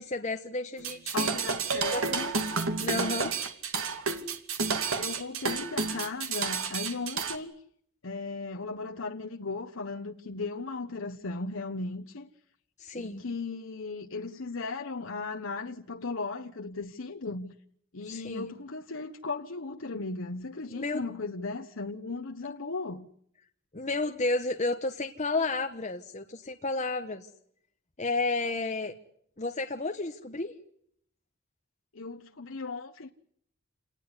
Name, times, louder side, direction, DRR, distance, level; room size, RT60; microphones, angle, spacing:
voice 1, 0.0-1.3 1.9-2.3 2.8-3.3 12.8-13.2 18.0-18.5 20.7-21.0 23.7-27.3 28.0-28.9 29.4-30.6, left 3 dB, 35° left, 1.3 m, -32 dB
sound 1, 0.8-7.4, right 5 dB, 80° right, 2.4 m, -30 dB
voice 2, 1.1-2.3 2.9-3.3 5.0-7.5 8.0-12.3 13.0-17.5 17.9-23.1 31.9-33.1, left 3 dB, 70° left, 1.1 m, -36 dB
28.0 x 19.5 x 9.7 m
head